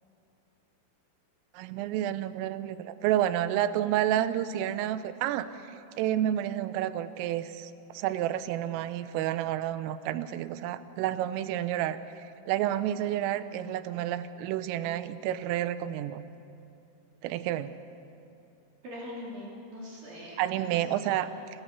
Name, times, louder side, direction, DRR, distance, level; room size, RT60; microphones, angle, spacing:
voice 1, 1.5-16.2 17.2-17.7 20.4-21.3, right 12 dB, 85° right, 12 dB, 3.4 m, -30 dB
voice 2, 18.8-21.3, left 1 dB, 50° right, -4 dB, 4.6 m, -42 dB
25.5 x 17.0 x 6.7 m, 2.8 s
omnidirectional pair, 5.7 m